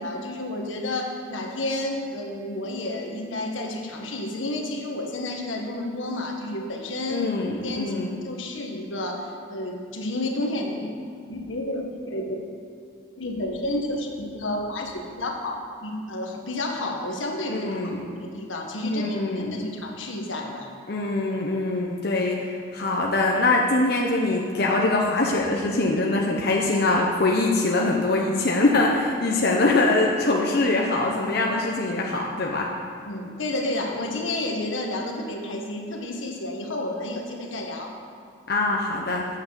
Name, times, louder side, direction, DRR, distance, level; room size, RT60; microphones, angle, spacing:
voice 1, 0.0-7.3 7.6-11.0 11.3-12.4 13.2-20.7 33.1-38.0, left 1 dB, 85° left, 1 dB, 1.4 m, -31 dB
voice 2, 7.1-8.2 17.5-18.0 18.8-19.6 20.9-32.7 38.5-39.3, left 2 dB, 55° left, -1 dB, 0.8 m, -23 dB
8.1 x 7.2 x 6.6 m, 2.4 s
head